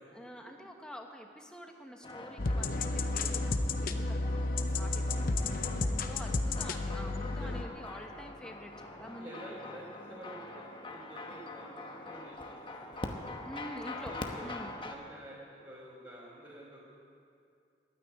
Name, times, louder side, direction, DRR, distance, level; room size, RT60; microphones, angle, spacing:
voice 1, 0.1-9.6 13.4-14.8, equal, 5° left, 3 dB, 1.1 m, -48 dB
sound 1, 2.0-15.0, left 2 dB, 25° left, 0.9 m, -44 dB
sound 2, 2.4-7.6, left 2 dB, 50° left, 0.7 m, -32 dB
voice 2, 4.8-5.3 7.2-7.7 9.1-13.2 14.0-14.5 14.8-16.8, right 1 dB, 25° right, -8 dB, 2.9 m, -49 dB
12.5 x 9.2 x 9.9 m, 2.5 s
head